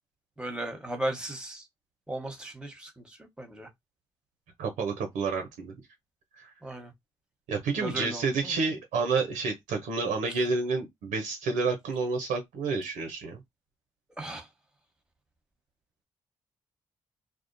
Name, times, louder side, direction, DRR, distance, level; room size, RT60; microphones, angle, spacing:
voice 1, 0.4-1.7 2.1-3.7 6.6-6.9 7.8-8.6 14.2-14.5, right 1 dB, 5° right, 0.9 m, -36 dB
voice 2, 4.6-5.8 6.4-6.5 7.5-13.4, right 4 dB, 80° right, 0.6 m, -29 dB
2.4 x 2.1 x 2.5 m
supercardioid pair, 45°, 13 cm